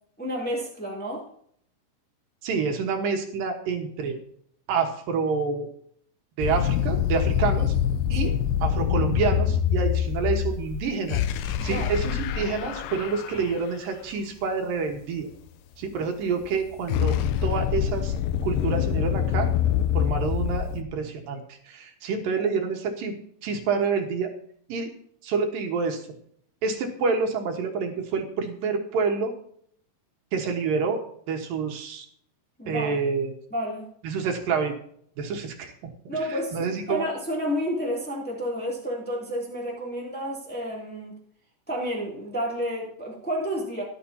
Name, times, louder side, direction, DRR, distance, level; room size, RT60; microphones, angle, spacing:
voice 1, 0.2-1.3 8.2-8.3 11.6-12.1 32.6-33.0 33.5-33.9 36.1-41.1 41.7-43.8, equal, 5° left, -3 dB, 2.3 m, -30 dB
voice 2, 2.4-4.2 4.7-5.7 6.4-7.7 8.1-8.3 8.6-11.2 11.6-15.3 15.8-18.1 18.4-19.5 19.9-23.2 23.4-24.3 24.7-24.9 25.2-26.0 26.6-29.3 30.3-32.1 32.7-33.4 34.0-34.7 35.2-35.7 36.3-37.1, right 5 dB, 85° right, 4 dB, 3.1 m, -28 dB
sound 1, 6.4-13.6 16.4-20.8, left 9 dB, 85° left, 2.5 m, -25 dB
13.5 x 11.5 x 2.8 m, 0.64 s
omnidirectional pair, 3.9 m